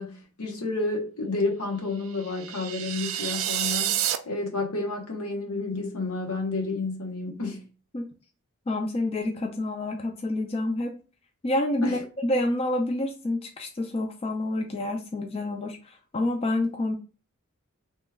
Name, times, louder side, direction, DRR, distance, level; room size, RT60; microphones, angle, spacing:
voice 1, 0.0-7.6 11.8-12.0, left 3 dB, 80° left, 0.9 m, -30 dB
sound 1, 2.1-4.2, right 11 dB, 60° right, 0.3 m, -29 dB
voice 2, 8.7-10.9 11.4-17.0, left 1 dB, 25° left, 0.3 m, -28 dB
3.0 x 2.2 x 3.3 m
head